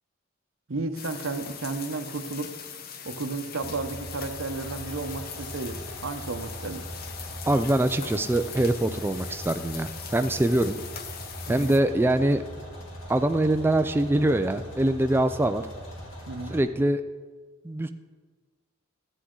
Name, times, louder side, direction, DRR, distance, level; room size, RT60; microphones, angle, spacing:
voice 1, 0.7-2.5 3.0-6.9 10.7-10.8 11.5-11.8 16.3-16.6, right 3 dB, 65° right, 7 dB, 0.8 m, -33 dB
sound 1, 0.9-11.8, left 7 dB, 50° left, 0.7 m, -41 dB
sound 2, 3.6-16.6, equal, 75° left, 2.3 m, -41 dB
voice 2, 7.5-10.8 11.5-12.4 13.1-15.6 16.5-17.0 17.6-17.9, right 1 dB, 10° right, 8 dB, 0.3 m, -23 dB
13.5 x 8.5 x 3.8 m, 1.4 s
head